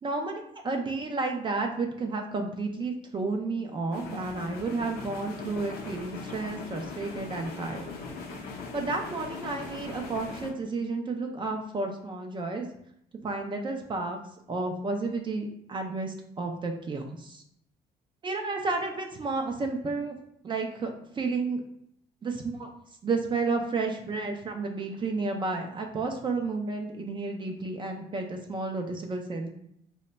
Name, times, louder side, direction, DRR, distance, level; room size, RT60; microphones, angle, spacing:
voice 1, 0.0-7.9 8.7-12.6 13.2-14.2 14.5-17.4 18.2-20.2 20.4-21.6 22.2-22.7 23.0-29.5, right 3 dB, 30° right, 3 dB, 0.4 m, -31 dB
sound 1, 3.9-10.5, left 4 dB, 65° left, 0.6 m, -40 dB
2.1 x 2.1 x 3.8 m, 0.72 s
cardioid pair, 110°, 17 cm